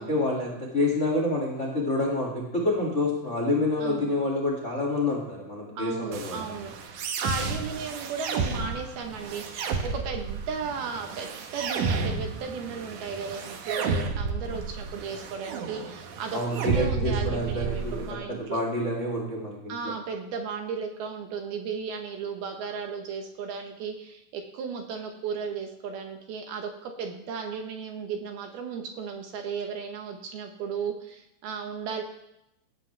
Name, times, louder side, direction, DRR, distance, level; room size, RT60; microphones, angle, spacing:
voice 1, 0.0-6.4 16.3-19.7, left 2 dB, 50° left, -1 dB, 0.8 m, -28 dB
voice 2, 3.8-4.1 5.8-18.6 19.7-32.0, right 6 dB, 70° right, 3 dB, 2.6 m, -35 dB
sound 1, 6.1-18.1, right 4 dB, 85° right, 1.7 m, -32 dB
17.5 x 13.5 x 3.3 m, 0.86 s
omnidirectional pair, 5.4 m